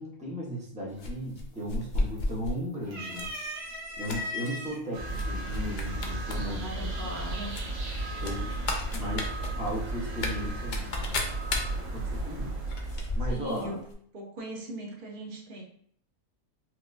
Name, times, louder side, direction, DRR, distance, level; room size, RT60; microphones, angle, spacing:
voice 1, 0.0-3.3 4.0-6.9 8.2-8.6 8.9-11.1 11.9-12.5 13.1-13.8, equal, 5° right, -4 dB, 0.6 m, -36 dB
sound 1, 1.0-2.6 3.1-3.4 3.7-4.5 5.1-5.3 5.5-6.4 6.7-6.8 7.5-13.7 13.9-14.0, left 2 dB, 90° left, 0.4 m, -33 dB
sound 2, 1.0-1.4 1.7-2.4 2.8-4.8 5.6-5.7 7.0-7.4, left 1 dB, 85° right, 1.5 m, -38 dB
sound 3, 4.9-13.5, right 2 dB, 70° right, 1.2 m, -34 dB
voice 2, 6.4-7.6 13.3-13.9 14.1-15.6, right 1 dB, 50° right, -1 dB, 0.7 m, -39 dB
4.6 x 2.4 x 2.4 m, 0.62 s
omnidirectional pair, 1.5 m